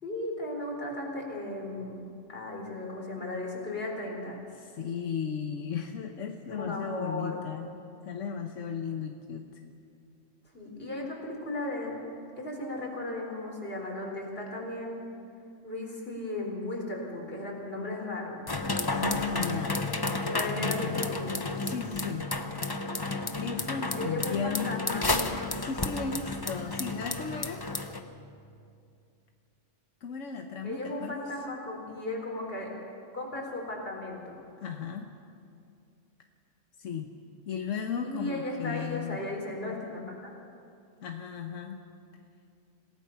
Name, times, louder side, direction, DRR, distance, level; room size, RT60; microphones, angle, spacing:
voice 1, 0.0-2.0 2.3-4.4 6.5-7.4 10.5-12.0 12.4-15.0 15.6-18.4 20.3-21.4 23.9-25.1 30.6-32.7 33.1-34.3 38.0-40.3, left 2 dB, 50° left, -1 dB, 4.3 m, -36 dB
voice 2, 4.5-7.7 8.0-9.6 18.9-19.8 20.5-21.1 21.6-22.3 23.4-27.7 30.0-31.2 34.6-35.1 36.8-37.1 37.5-39.2 41.0-41.8, left 6 dB, 90° left, 4 dB, 1.3 m, -35 dB
sound 1, 18.5-28.0, left 3 dB, 20° left, 0.9 m, -32 dB
27.0 x 17.5 x 5.8 m, 2.4 s
omnidirectional pair, 1.3 m